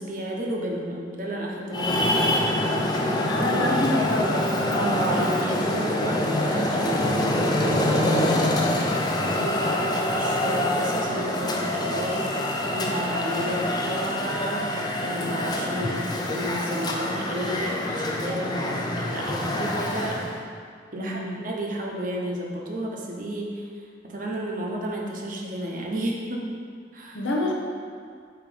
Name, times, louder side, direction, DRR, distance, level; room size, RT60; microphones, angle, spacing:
voice 1, 0.0-2.2 4.7-8.7 9.2-20.2 20.9-23.7 24.0-26.4 26.9-27.3, right 1 dB, 45° right, -1 dB, 0.9 m, -32 dB
Traffic noise roadway noise, 1.7-20.4, left 1 dB, 20° left, 0.5 m, -25 dB
voice 2, 3.2-4.9 21.0-21.4 27.1-27.5, left 1 dB, 85° left, -1 dB, 1.0 m, -27 dB
8.6 x 3.0 x 5.1 m, 2.1 s
head